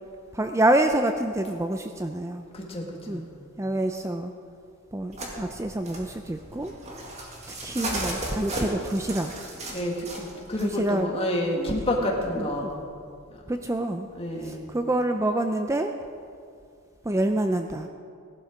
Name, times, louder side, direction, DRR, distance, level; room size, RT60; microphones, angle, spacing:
voice 1, 0.3-2.4 3.1-3.3 3.6-4.3 4.9-6.7 7.5-9.3 10.6-11.2 11.6-12.1 12.4-12.7 13.5-14.1 14.4-15.9 17.0-17.9, right 1 dB, 15° right, 6 dB, 0.4 m, -27 dB
voice 2, 2.5-3.3 9.7-12.8 14.1-14.7, left 1 dB, 25° left, 0 dB, 1.7 m, -29 dB
sound 1, 5.1-10.7 12.0-12.8, right 1 dB, 30° right, 1.9 m, -36 dB
16.0 x 11.5 x 5.0 m, 2.3 s
head